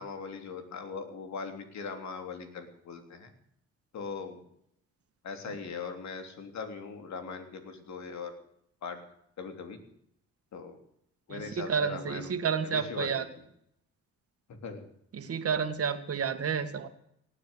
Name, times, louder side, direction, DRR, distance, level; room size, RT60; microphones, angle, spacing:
voice 1, 0.0-3.3 3.9-4.4 5.2-8.3 8.8-9.0 9.4-9.8 10.5-10.8 11.3-12.3 12.6-13.2 14.5-14.9, left 5 dB, 65° left, 6 dB, 3.3 m, -40 dB
voice 2, 11.3-13.2 15.1-16.9, right 6 dB, 50° right, 8 dB, 2.2 m, -30 dB
18.0 x 9.5 x 8.2 m, 0.72 s
cardioid pair, 90°, 30 cm